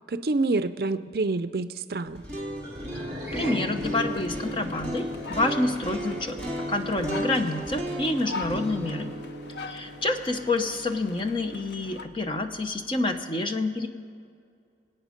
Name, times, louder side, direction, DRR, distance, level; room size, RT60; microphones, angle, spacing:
voice 1, 0.1-2.2, right 3 dB, 55° right, 12 dB, 0.5 m, -27 dB
sound 1, 2.1-12.1, equal, 5° left, 2.4 m, -35 dB
sound 2, 2.6-7.1, equal, 15° right, 4.9 m, -39 dB
voice 2, 3.3-6.4 6.7-9.1 9.7-13.9, left 2 dB, 30° left, 6 dB, 0.9 m, -28 dB
sound 3, 3.8-12.1, left 3 dB, 70° left, 0.7 m, -42 dB
25.5 x 8.9 x 5.1 m, 2.3 s
head